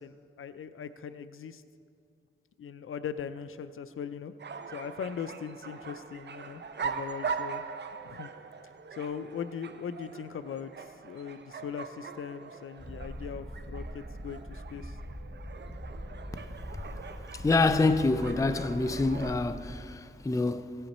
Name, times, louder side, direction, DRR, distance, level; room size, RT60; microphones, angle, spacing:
voice 1, 0.0-1.6 2.6-4.3 4.7-7.6 8.0-8.3 8.9-15.0, left 7 dB, 80° left, 0.4 m, -40 dB
sound 1, 4.4-19.3, right 5 dB, 55° right, 0.6 m, -42 dB
Purr, 12.8-19.8, equal, ahead, 0.9 m, -42 dB
voice 2, 17.3-20.8, left 3 dB, 15° left, 0.4 m, -26 dB
16.0 x 8.9 x 4.2 m
wide cardioid pair, 70°, 21 cm